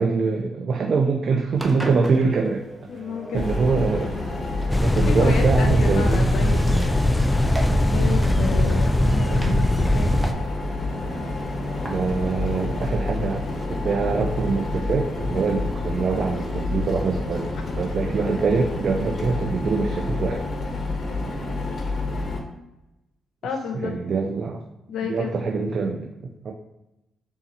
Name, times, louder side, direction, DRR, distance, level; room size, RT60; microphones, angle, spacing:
voice 1, 0.0-2.6 3.3-4.1 4.8-6.3 11.8-20.5 23.8-24.6 25.0-26.1 26.4-26.5, right 4 dB, 60° right, 1 dB, 0.5 m, -24 dB
Engine, 1.6-13.6, right 1 dB, 15° right, 0.8 m, -39 dB
voice 2, 2.9-4.3 5.1-7.1 7.8-10.4 23.4-23.9 24.9-25.4, left 5 dB, 75° left, 3 dB, 0.5 m, -31 dB
sound 1, 3.3-22.4, left 2 dB, 45° left, 1.0 m, -29 dB
sound 2, 4.7-10.3, left 1 dB, 15° left, 0.3 m, -20 dB
3.6 x 2.8 x 4.1 m, 0.94 s
supercardioid pair, 55°, 0 cm